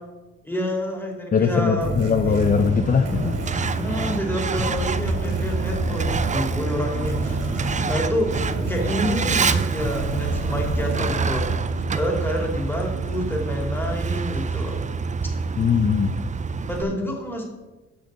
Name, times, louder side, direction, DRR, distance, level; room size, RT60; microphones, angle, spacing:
voice 1, 0.4-1.9 2.2-2.3 3.8-7.4 7.8-8.3 8.7-11.5 11.9-14.8 15.2-15.3 16.7-17.4, left 1 dB, 5° left, 0 dB, 2.5 m, -28 dB
voice 2, 1.3-3.4 15.6-16.1, left 6 dB, 30° left, 9 dB, 0.5 m, -20 dB
sound 1, 1.8-12.6, right 1 dB, 75° right, 2.8 m, -30 dB
Truck, 2.3-16.8, right 5 dB, 25° right, 0.5 m, -27 dB
6.7 x 6.5 x 6.7 m, 1.1 s
cardioid pair, 90°, 30 cm